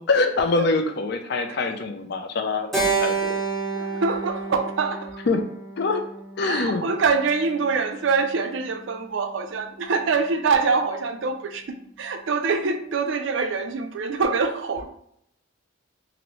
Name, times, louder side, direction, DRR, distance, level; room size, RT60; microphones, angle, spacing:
voice 1, 0.1-3.4 5.3-5.4 5.8-6.0 6.4-6.8, left 3 dB, 50° left, 0.4 m, -24 dB
Keyboard (musical), 2.7-7.1, right 4 dB, ahead, 0.8 m, -29 dB
voice 2, 3.7-5.2 6.4-14.9, right 4 dB, 65° right, 0.4 m, -25 dB
3.0 x 2.6 x 2.9 m
head